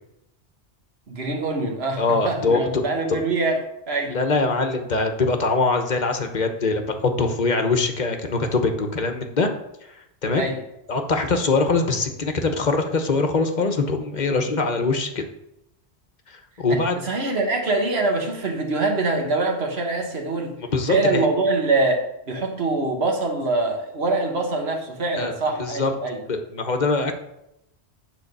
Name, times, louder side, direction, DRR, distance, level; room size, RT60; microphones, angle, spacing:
voice 1, 1.1-3.6 3.9-4.2 10.3-10.6 16.7-20.5 20.9-26.2, right 2 dB, 70° right, 3 dB, 1.6 m, -24 dB
voice 2, 2.0-2.8 4.1-9.5 10.2-10.5 10.9-15.2 16.6-17.0 20.7-21.3 25.2-25.3 25.6-25.9 26.3-27.1, left 3 dB, 45° left, 5 dB, 1.0 m, -22 dB
9.9 x 3.9 x 6.6 m, 0.83 s
omnidirectional pair, 1.1 m